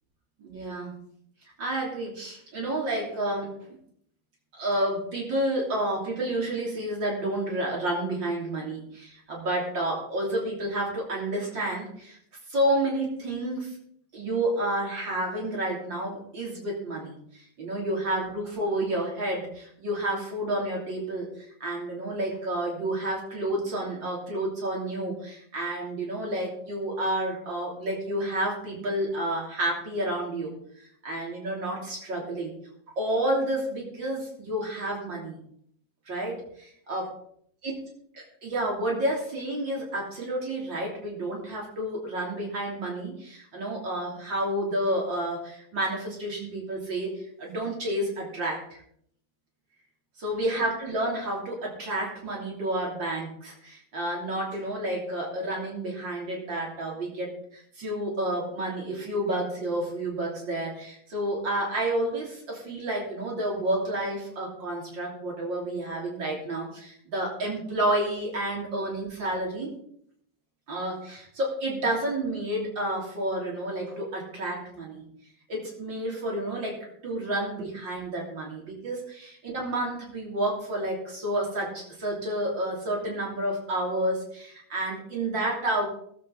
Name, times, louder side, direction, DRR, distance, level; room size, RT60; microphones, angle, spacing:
voice 1, 0.4-0.9 1.6-3.8 4.5-12.2 12.5-13.7 14.1-32.5 32.9-35.4 36.1-37.1 37.6-37.8 38.1-48.8 50.2-69.7 70.7-75.0 75.5-85.9, right 1 dB, 80° right, -3 dB, 3.9 m, -30 dB
20.0 x 7.8 x 4.0 m, 0.68 s
omnidirectional pair, 2.0 m